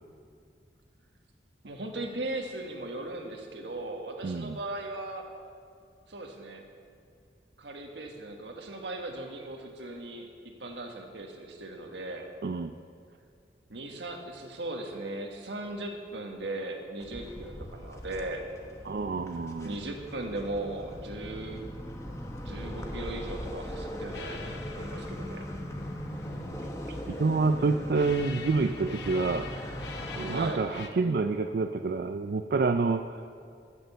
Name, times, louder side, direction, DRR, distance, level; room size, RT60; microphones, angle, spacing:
voice 1, 1.6-5.3 6.1-6.7 7.6-12.3 13.7-18.4 19.6-21.7 22.4-25.4 30.3-30.6, right 2 dB, 90° right, 2 dB, 1.5 m, -38 dB
voice 2, 4.2-4.6 12.4-12.7 18.9-19.7 26.9-29.5 30.2-33.3, right 3 dB, 60° right, 7 dB, 0.4 m, -28 dB
sound 1, 17.0-30.5, equal, 15° left, 1.0 m, -39 dB
sound 2, 24.1-30.9, left 4 dB, 85° left, 1.0 m, -45 dB
14.5 x 6.8 x 6.8 m, 2.2 s
head